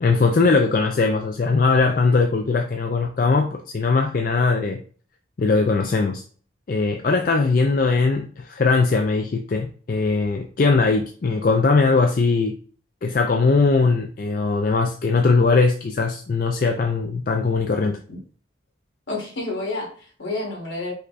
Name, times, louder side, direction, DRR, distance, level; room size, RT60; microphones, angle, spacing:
voice 1, 0.0-4.8 5.4-6.2 6.7-12.6 13.0-18.0, left 4 dB, 45° left, 4 dB, 0.4 m, -20 dB
voice 2, 19.1-20.9, left 2 dB, 70° left, -1 dB, 1.9 m, -29 dB
5.3 x 2.2 x 4.0 m, 0.42 s
head